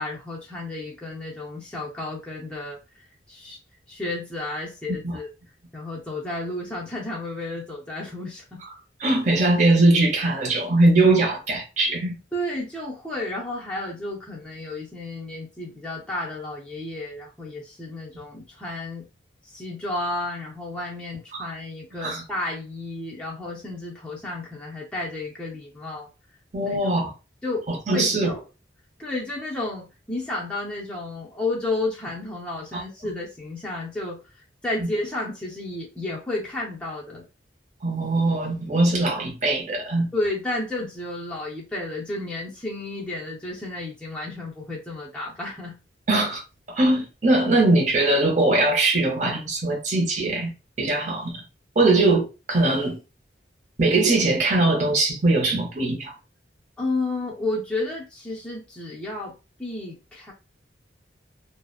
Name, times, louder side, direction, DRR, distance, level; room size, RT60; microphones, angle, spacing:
voice 1, 0.0-2.8 3.3-3.6 3.9-5.3 5.7-8.6 12.3-19.1 19.4-26.1 26.6-26.8 27.4-27.7 27.9-28.4 29.0-34.2 34.6-37.2 40.1-45.8 56.8-60.3, left 2 dB, 5° left, 0.5 m, -32 dB
voice 2, 9.0-12.1 21.3-21.5 22.0-22.2 26.5-27.1 27.7-28.3 32.7-32.8 37.8-40.1 46.1-46.4 46.7-50.5 50.8-51.4 51.8-53.0 53.8-56.1, right 2 dB, 40° right, 0.6 m, -21 dB
2.7 x 2.0 x 2.3 m
head